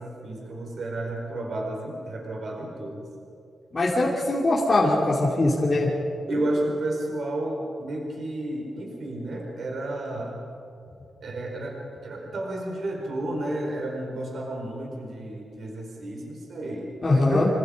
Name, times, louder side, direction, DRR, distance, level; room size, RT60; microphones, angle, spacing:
voice 1, 0.0-3.1 6.3-10.4 11.2-17.4, right 1 dB, 50° right, 0 dB, 4.7 m, -31 dB
voice 2, 3.7-5.9 17.0-17.5, left 2 dB, 25° left, -5 dB, 2.8 m, -22 dB
27.0 x 26.0 x 5.2 m, 2.6 s
wide cardioid pair, 175°, 0 cm